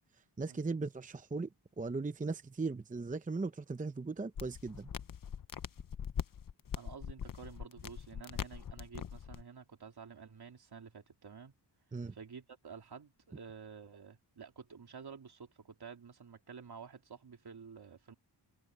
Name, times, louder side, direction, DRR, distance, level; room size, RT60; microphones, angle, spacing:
voice 1, 0.4-1.5 1.8-4.9 11.9-12.1, right 3 dB, 20° right, 0.7 m, -38 dB
sound 1, 4.4-9.4, left 8 dB, 50° left, 0.7 m, -42 dB
voice 2, 6.7-11.5 12.1-18.1, right 6 dB, 60° right, 3.4 m, -51 dB
wide cardioid pair, 130°, 42 cm